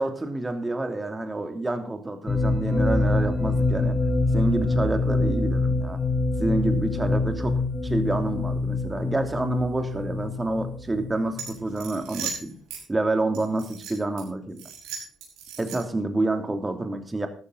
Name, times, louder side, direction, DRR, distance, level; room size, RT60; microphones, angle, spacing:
voice 1, 0.0-4.0 4.3-6.0 6.4-7.6 7.8-12.5 12.9-14.6 15.6-17.3, right 2 dB, 20° right, 6 dB, 3.0 m, -28 dB
sound 1, 2.3-11.9, left 2 dB, 30° left, 3.1 m, -25 dB
sound 2, 11.3-12.8 13.3-14.2 14.6-16.0, right 6 dB, 75° right, 5.2 m, -37 dB
13.5 x 12.5 x 4.1 m, 0.41 s
hypercardioid pair, 50°, 0 cm